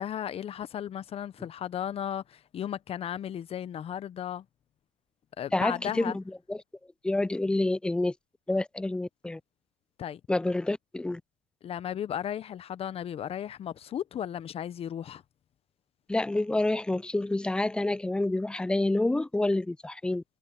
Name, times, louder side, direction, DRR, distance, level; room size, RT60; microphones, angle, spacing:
voice 1, 0.0-4.4 5.4-6.2 10.0-10.2 11.6-15.2, left 9 dB, 35° left, 0.9 m, -35 dB
voice 2, 5.5-6.2 6.5-6.6 7.0-8.1 8.5-9.4 10.3-11.2 16.1-20.2, left 2 dB, 5° left, 0.4 m, -28 dB
supercardioid pair, 110°, 17 cm